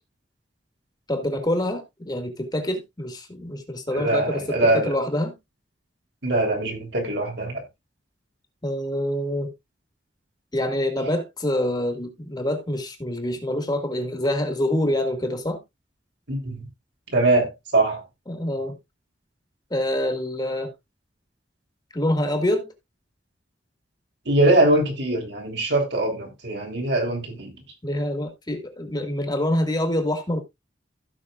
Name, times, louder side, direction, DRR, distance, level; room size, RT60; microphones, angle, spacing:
voice 1, 1.1-5.3 8.6-9.5 10.5-15.6 18.3-18.8 19.7-20.7 21.9-22.7 27.8-30.4, left 1 dB, 25° left, 1.9 m, -26 dB
voice 2, 3.9-4.9 6.2-7.6 16.3-16.7 17.1-18.0 24.3-27.6, right 2 dB, 75° right, 3.5 m, -22 dB
16.0 x 6.0 x 2.4 m
head